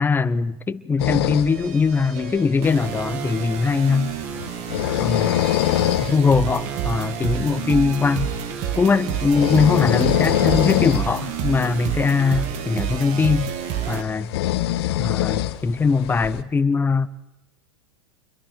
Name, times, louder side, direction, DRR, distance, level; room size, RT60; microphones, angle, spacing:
voice 1, 0.0-4.1 5.0-5.5 6.0-8.3 8.8-13.5 13.9-14.3 15.0-17.1, left 5 dB, 15° left, 14 dB, 0.9 m, -21 dB
sound 1, 1.0-16.4, left 14 dB, 70° left, 1.1 m, -26 dB
sound 2, 1.5-14.0, right 9 dB, 50° right, 2.1 m, -29 dB
28.5 x 22.5 x 4.6 m, 0.98 s
hypercardioid pair, 115°, 14 cm